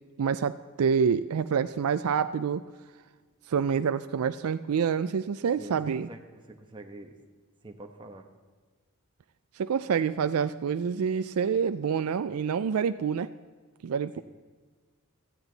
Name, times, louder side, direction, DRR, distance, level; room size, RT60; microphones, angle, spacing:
voice 1, 0.2-2.6 3.5-6.1 9.6-13.3 13.8-14.2, right 6 dB, 85° right, 11 dB, 0.4 m, -27 dB
voice 2, 6.1-7.1 7.6-8.2, right 2 dB, 20° right, 3 dB, 1.0 m, -45 dB
16.0 x 14.5 x 4.0 m, 1.5 s
head